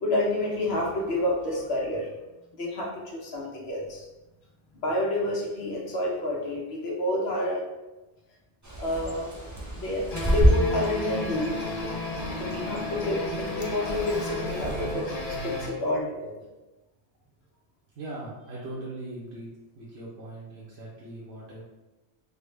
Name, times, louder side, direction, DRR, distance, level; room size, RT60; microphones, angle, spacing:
voice 1, 0.0-2.1 2.5-4.1 4.7-7.6 8.8-9.3 9.8-11.5 12.4-16.3, left 1 dB, 65° left, -3 dB, 1.0 m, -29 dB
Bird, 8.6-15.7, right 1 dB, 30° right, 0.3 m, -30 dB
sound 1, 10.1-15.7, left 1 dB, 50° left, 0.5 m, -33 dB
voice 2, 17.9-19.5 19.7-21.6, right 2 dB, 70° right, -6 dB, 0.9 m, -40 dB
3.5 x 2.1 x 3.1 m, 1.1 s
omnidirectional pair, 1.2 m